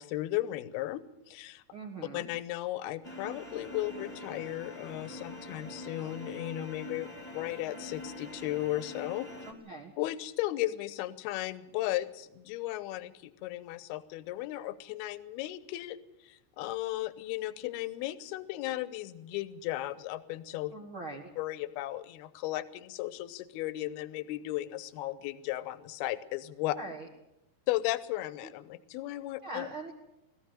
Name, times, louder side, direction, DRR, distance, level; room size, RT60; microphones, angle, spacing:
voice 1, 0.0-1.6 2.1-9.3 10.0-16.0 16.2-20.7 21.4-26.8 27.7-29.7, left 15 dB, 75° left, 15 dB, 2.5 m, -35 dB
voice 2, 1.7-2.3 9.4-9.9 20.7-21.3 26.8-27.1 29.4-29.9, right 2 dB, 70° right, 1 dB, 1.2 m, -41 dB
sound 1, 3.0-9.5, left 1 dB, 15° left, 1.3 m, -44 dB
21.0 x 14.5 x 9.0 m, 0.88 s
omnidirectional pair, 5.2 m